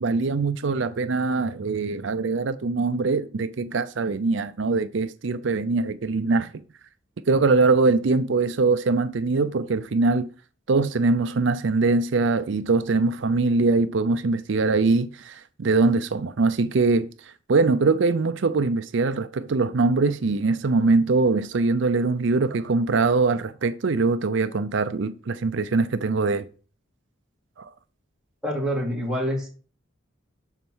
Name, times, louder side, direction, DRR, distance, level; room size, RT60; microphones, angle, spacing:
voice 1, 0.0-6.5 7.3-10.3 10.7-26.4 27.6-27.7, right 3 dB, 60° right, 0.5 m, -22 dB
voice 2, 28.4-29.5, equal, 5° right, 2.9 m, -26 dB
12.5 x 4.4 x 6.2 m
head